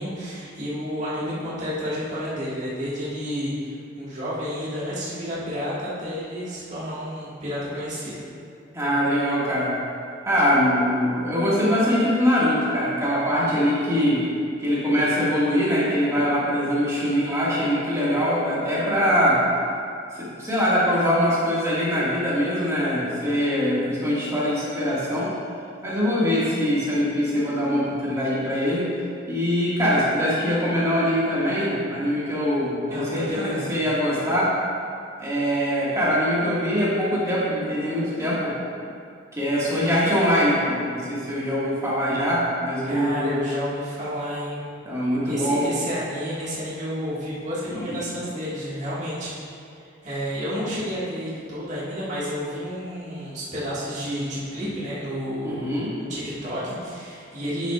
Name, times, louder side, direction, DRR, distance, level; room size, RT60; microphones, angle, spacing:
voice 1, 0.0-8.3 32.9-33.8 42.8-44.7 45.3-49.3 50.0-55.7 56.0-57.7, equal, 40° right, -9 dB, 1.9 m, -30 dB
voice 2, 8.7-9.8 10.3-14.3 14.6-19.4 20.1-25.3 25.8-29.0 29.3-34.5 35.2-38.6 39.3-43.4 44.9-45.7 47.7-48.0 55.4-55.9, equal, 15° right, -8 dB, 1.9 m, -23 dB
9.5 x 7.1 x 2.5 m, 2.4 s
head